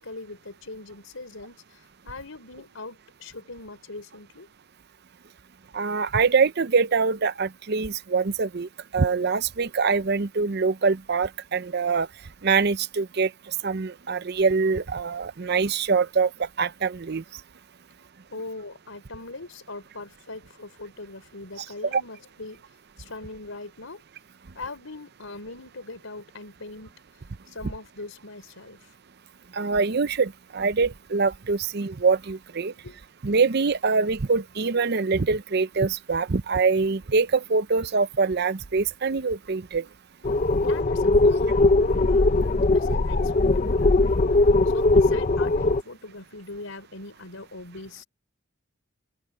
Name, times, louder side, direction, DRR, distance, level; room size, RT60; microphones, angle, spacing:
voice 1, 0.0-4.5 18.3-22.6 23.0-24.0 24.5-27.0 27.5-28.9 32.8-33.0 40.6-48.1, left 2 dB, 85° left, 4.4 m, -41 dB
voice 2, 5.7-12.1 12.4-17.2 21.9-22.0 29.5-32.7 33.2-39.9, right 4 dB, 55° right, 0.7 m, -24 dB
sound 1, 40.2-45.8, left 2 dB, 40° left, 0.6 m, -20 dB
open air
head